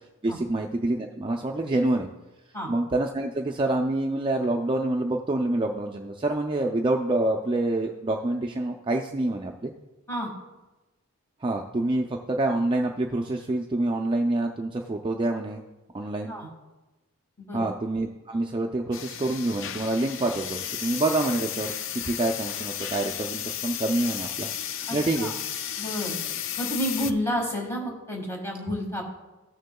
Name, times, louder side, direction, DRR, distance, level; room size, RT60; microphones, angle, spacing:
voice 1, 0.2-2.1 2.7-9.7 11.4-15.6 15.9-16.3 17.5-25.3, right 2 dB, 20° right, 2 dB, 0.4 m, -27 dB
sound 1, 18.9-27.1, left 9 dB, 60° left, 0.4 m, -33 dB
voice 2, 24.9-25.3 25.8-26.2 26.6-29.0, equal, 10° left, 0 dB, 1.6 m, -30 dB
15.0 x 6.5 x 2.3 m, 1.1 s
head